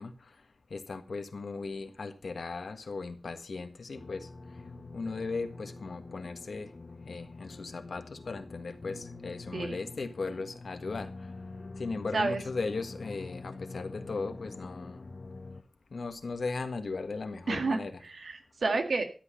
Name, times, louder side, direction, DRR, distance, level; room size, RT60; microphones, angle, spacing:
voice 1, 0.0-6.7 7.0-15.1 15.9-18.0, left 4 dB, 80° left, 7 dB, 1.6 m, -38 dB
sound 1, 3.9-15.6, left 3 dB, 55° left, 1.1 m, -46 dB
voice 2, 17.5-19.0, right 3 dB, 90° right, 5 dB, 2.0 m, -30 dB
13.5 x 8.3 x 5.6 m, 0.37 s
wide cardioid pair, 60°, 0 cm